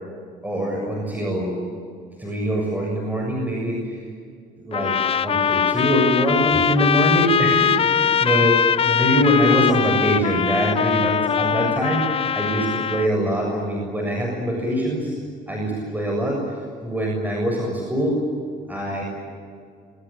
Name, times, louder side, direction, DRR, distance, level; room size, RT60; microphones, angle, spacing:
voice 1, 0.4-1.6 2.2-4.0 4.6-5.0 5.2-15.2 15.5-16.4 16.8-18.2 18.7-19.0, equal, 10° right, -1 dB, 7.1 m, -23 dB
sound 1, 4.7-13.1, left 8 dB, 35° left, 0.6 m, -21 dB
27.5 x 24.0 x 8.9 m, 2.2 s
cardioid pair, 110°, 17 cm